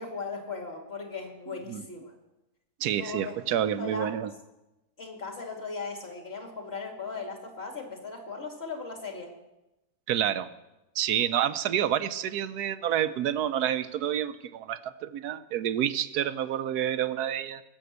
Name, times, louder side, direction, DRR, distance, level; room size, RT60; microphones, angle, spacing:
voice 1, 0.0-2.1 3.0-3.4 3.8-4.1 5.0-9.3, left 4 dB, 40° left, 2 dB, 2.7 m, -38 dB
voice 2, 2.8-4.3 10.1-10.5 11.0-17.6, right 10 dB, 90° right, 12 dB, 1.2 m, -28 dB
19.0 x 7.3 x 8.1 m, 0.97 s
omnidirectional pair, 1.6 m